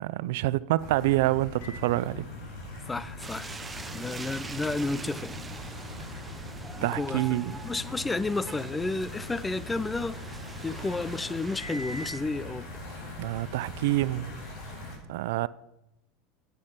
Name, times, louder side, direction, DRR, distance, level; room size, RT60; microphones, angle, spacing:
voice 1, 0.0-2.3 6.8-7.5 13.2-14.3 15.1-15.5, right 17 dB, 75° right, 0.4 m, -27 dB
sound 1, 0.8-15.0, left 2 dB, 50° left, 4.7 m, -41 dB
Microwave oven, 1.6-12.4, equal, 75° left, 3.0 m, -50 dB
voice 2, 2.9-3.6 3.9-5.4 6.8-7.2 7.5-10.2 10.6-12.7, left 3 dB, 10° left, 0.4 m, -31 dB
sound 2, 3.2-12.1, right 3 dB, 10° right, 0.7 m, -43 dB
9.7 x 8.4 x 5.8 m
supercardioid pair, 135°, 0 cm